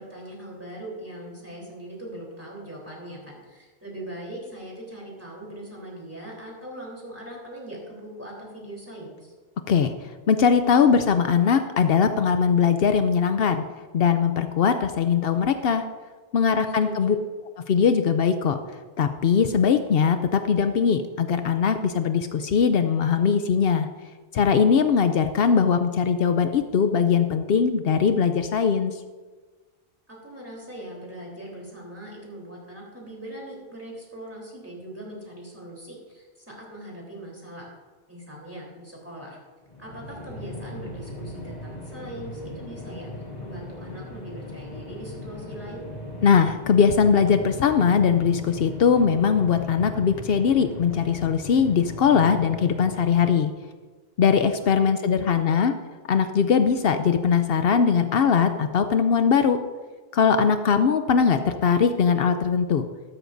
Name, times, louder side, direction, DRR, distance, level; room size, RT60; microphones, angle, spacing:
voice 1, 0.0-9.3 16.8-17.2 30.1-37.7 38.1-39.4 39.8-43.1 43.4-45.9 54.6-55.7, right 1 dB, 15° right, -3 dB, 3.5 m, -40 dB
voice 2, 9.7-13.7 13.9-15.9 16.3-17.2 17.7-18.6 19.0-23.9 24.3-29.0 46.2-53.5 54.2-55.7 56.1-59.6 60.1-62.8, left 6 dB, 75° left, 9 dB, 0.8 m, -21 dB
sound 1, 39.7-53.5, left 1 dB, 45° left, 1.6 m, -38 dB
14.0 x 13.0 x 2.6 m, 1.3 s
omnidirectional pair, 1.0 m